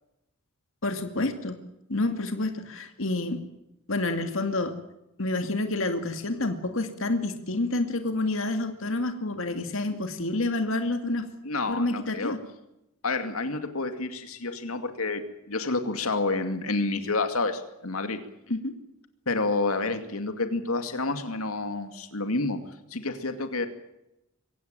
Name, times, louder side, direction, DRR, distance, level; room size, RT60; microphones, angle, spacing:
voice 1, 0.8-1.6 1.9-3.4 3.9-4.7 5.2-11.3 11.7-12.4 18.5-18.7, left 2 dB, 65° left, 7 dB, 2.4 m, -28 dB
voice 2, 11.4-12.4 13.0-18.2 19.3-22.6 22.9-23.7, left 3 dB, 90° left, 8 dB, 2.4 m, -29 dB
23.5 x 17.0 x 8.9 m, 0.89 s
head